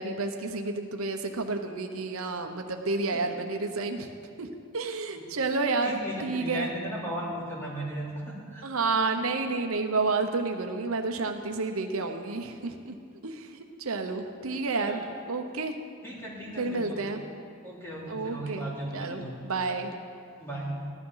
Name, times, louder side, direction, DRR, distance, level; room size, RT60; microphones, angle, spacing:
voice 1, 0.0-4.1 4.4-4.5 4.7-6.7 8.6-13.0 13.2-15.0 15.3-15.7 16.6-17.2 18.1-18.6 18.9-19.9, right 3 dB, 80° right, 5 dB, 0.9 m, -30 dB
voice 2, 5.8-8.6 14.9-15.1 16.0-17.1 17.6-19.4 20.4-20.9, right 1 dB, 10° left, -6 dB, 2.7 m, -36 dB
14.5 x 11.5 x 5.7 m, 2.3 s
head